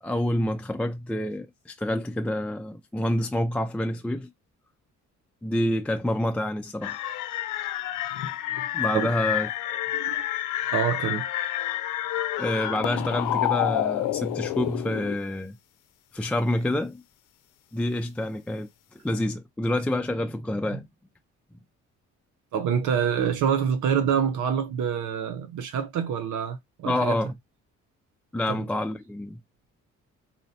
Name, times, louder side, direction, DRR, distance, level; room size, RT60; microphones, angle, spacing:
voice 1, 0.0-4.3 5.4-7.0 8.7-9.5 12.4-15.5 16.1-17.0 17.7-18.7 19.0-20.9 26.8-27.3 28.3-29.4, left 1 dB, 5° left, 0.4 m, -27 dB
sound 1, 6.8-15.2, left 13 dB, 85° left, 0.5 m, -29 dB
voice 2, 10.7-11.3 20.7-20.8 22.5-27.2 28.5-28.6, right 7 dB, 80° right, 0.7 m, -26 dB
4.1 x 2.1 x 2.7 m
cardioid pair, 90°, 30 cm